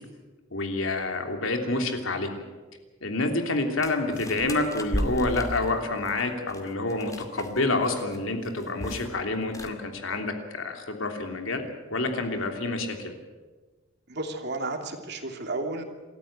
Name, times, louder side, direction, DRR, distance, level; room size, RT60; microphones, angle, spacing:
voice 1, 0.5-2.4 3.0-11.6 11.9-13.1, left 2 dB, 80° left, 4 dB, 3.1 m, -28 dB
sound 1, 3.8-7.6 7.8-8.2 8.4-9.1 9.4-9.7, equal, 15° left, 2.3 m, -34 dB
voice 2, 14.1-15.8, right 2 dB, 55° right, 4 dB, 2.9 m, -32 dB
27.5 x 13.5 x 8.8 m, 1.3 s
head